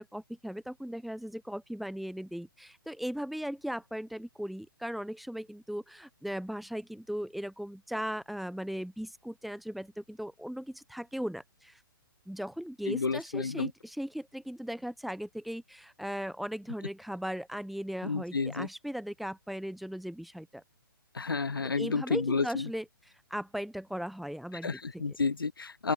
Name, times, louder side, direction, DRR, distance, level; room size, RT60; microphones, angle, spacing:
voice 1, 0.0-11.8 12.3-20.6 21.6-22.8 23.3-25.0, equal, ahead, 1.1 m, -38 dB
voice 2, 12.9-13.7 18.0-18.7 21.1-22.7 24.6-25.9, left 4 dB, 70° left, 0.9 m, -31 dB
open air
figure-of-eight pair, 125°, 12 cm